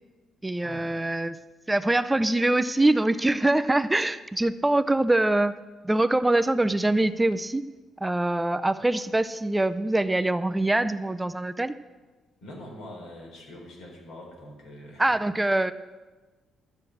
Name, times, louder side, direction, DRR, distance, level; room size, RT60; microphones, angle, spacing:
voice 1, 0.4-1.4 1.7-5.6 5.8-7.6 8.0-11.8 15.0-15.7, right 2 dB, 15° right, 11 dB, 0.5 m, -24 dB
voice 2, 12.4-15.0, left 1 dB, 85° left, 0 dB, 4.4 m, -43 dB
13.0 x 7.4 x 7.9 m, 1.3 s
cardioid pair, 90°, 0 cm